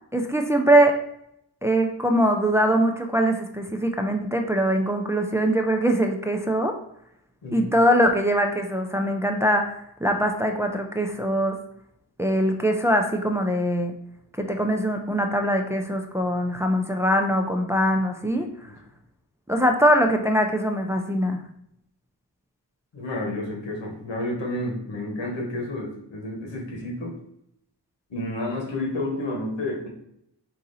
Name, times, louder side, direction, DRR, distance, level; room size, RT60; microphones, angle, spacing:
voice 1, 0.1-1.0 1.6-6.7 7.5-9.7 10.0-11.6 12.2-13.9 14.4-18.5 19.5-21.4, equal, 5° right, 3 dB, 0.4 m, -22 dB
voice 2, 18.3-18.8 22.9-27.1 28.1-29.9, left 1 dB, 90° left, 0 dB, 1.4 m, -30 dB
3.8 x 2.8 x 4.0 m, 0.76 s
cardioid pair, 80°, 43 cm